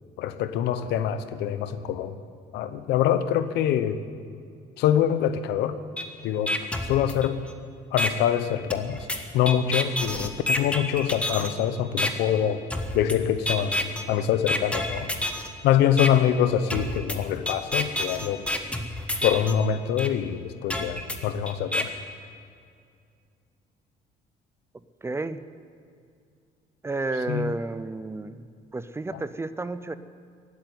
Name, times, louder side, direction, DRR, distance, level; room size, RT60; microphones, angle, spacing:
voice 1, 0.2-2.2 2.5-4.0 4.8-5.8 6.2-6.6 6.8-7.5 7.9-9.1 9.3-12.6 12.9-15.1 15.6-18.5 19.2-21.9 27.3-27.5, left 10 dB, 85° left, 12 dB, 0.9 m, -25 dB
sound 1, 6.0-6.1 6.5-7.5 8.0-8.1 8.7-11.5 12.0-12.1 12.7-13.2 13.5-14.0 14.5-15.5 16.0-16.1 16.7-19.5 20.0-20.1 20.7-21.8, left 1 dB, 5° left, 1.3 m, -28 dB
voice 2, 25.0-25.4 26.8-28.5 28.7-30.0, right 3 dB, 15° right, 13 dB, 0.5 m, -31 dB
15.5 x 8.9 x 9.4 m, 2.3 s
cardioid pair, 110°, 17 cm